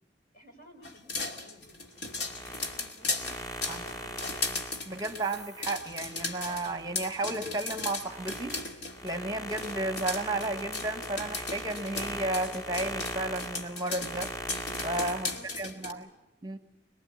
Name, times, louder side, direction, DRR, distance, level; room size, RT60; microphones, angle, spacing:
voice 1, 0.3-4.6 15.2-16.6, left 1 dB, 50° left, 2 dB, 5.8 m, -55 dB
sound 1, 0.8-9.2 9.5-15.9, left 3 dB, 75° left, 2.4 m, -36 dB
sound 2, 2.0-7.1 7.5-15.4, equal, 20° left, 1.8 m, -40 dB
voice 2, 4.9-8.6 9.0-14.3 14.8-15.3 15.6-16.0 16.4-16.6, right 2 dB, 20° right, 8 dB, 1.1 m, -33 dB
26.0 x 21.5 x 8.3 m, 0.91 s
head